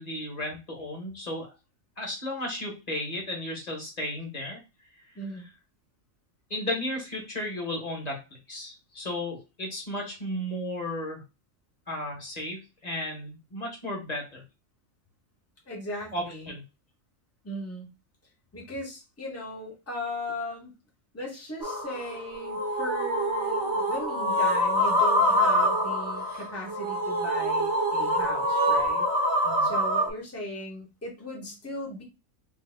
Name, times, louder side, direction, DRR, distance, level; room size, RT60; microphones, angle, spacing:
voice 1, 0.0-1.5 2.0-4.6 6.5-8.2 8.5-11.2 11.9-14.4 16.1-16.6 29.4-29.7, left 1 dB, 30° left, 0 dB, 1.3 m, -34 dB
voice 2, 15.7-16.5 17.4-17.9 18.5-20.7 21.1-29.0 29.6-32.0, left 1 dB, 10° left, -2 dB, 1.1 m, -37 dB
sound 1, 21.6-30.1, equal, 20° right, 0.9 m, -25 dB
3.2 x 2.8 x 3.4 m, 0.27 s
omnidirectional pair, 1.4 m